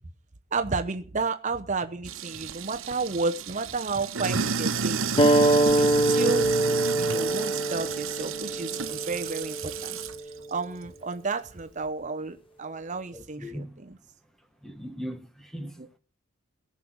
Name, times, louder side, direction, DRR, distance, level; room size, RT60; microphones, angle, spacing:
voice 1, 0.5-5.1 5.8-6.5 6.9-10.0 10.5-13.9 15.6-15.9, right 4 dB, 40° right, 0.9 m, -32 dB
Sink (filling or washing), 2.1-10.2, right 6 dB, 90° right, 1.1 m, -31 dB
sound 1, 5.2-10.3, right 1 dB, 25° left, 1.0 m, -24 dB
voice 2, 13.1-13.8 14.6-16.0, equal, ahead, 1.5 m, -39 dB
18.0 x 6.3 x 8.1 m
head